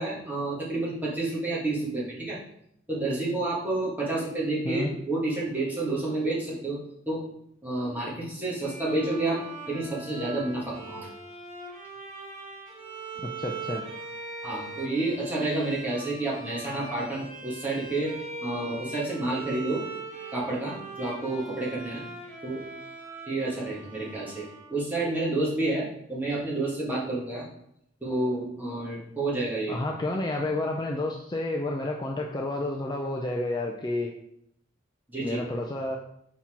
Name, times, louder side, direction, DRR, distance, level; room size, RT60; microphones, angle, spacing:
voice 1, 0.0-2.4 2.9-6.8 7.1-7.2 7.6-9.4 9.7-11.1 14.4-18.1 18.4-19.8 20.3-22.0 22.4-22.6 23.3-27.5 28.0-29.8 35.1-35.4, right 2 dB, 10° right, -6 dB, 1.8 m, -29 dB
Bowed string instrument, 8.6-25.1, right 3 dB, 35° right, 2.1 m, -41 dB
voice 2, 13.2-13.8 29.7-34.1 35.2-36.0, left 2 dB, 20° left, 0 dB, 0.5 m, -30 dB
5.8 x 4.2 x 4.4 m, 0.73 s
head